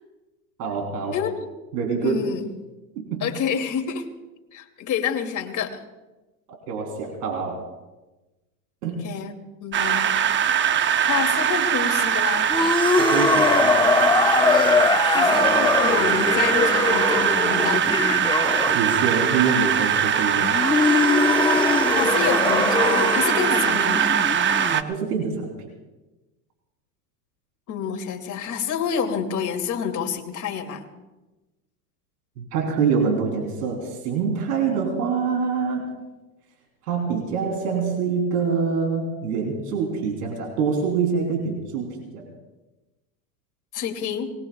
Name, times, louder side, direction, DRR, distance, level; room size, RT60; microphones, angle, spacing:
voice 1, 0.6-1.2 1.7-2.2 3.0-3.3 6.7-7.6 8.8-9.0 11.6-11.7 13.0-13.8 18.7-20.6 24.7-25.7 32.4-35.9 36.9-42.3, right 5 dB, 75° right, 1 dB, 3.7 m, -25 dB
voice 2, 1.1-1.5 1.9-2.4 3.2-4.1 4.5-5.8 9.0-9.3 9.6-10.1 11.0-12.5 15.1-18.1 21.9-24.1 27.7-30.8 43.7-44.3, left 7 dB, 40° left, 4 dB, 2.7 m, -28 dB
sound 1, 9.7-24.8, right 9 dB, 25° right, 0.8 m, -22 dB
sound 2, 12.5-19.0 20.4-24.8, left 4 dB, 10° left, 1.0 m, -22 dB
25.0 x 20.5 x 2.4 m, 1.1 s
hypercardioid pair, 100°, 47 cm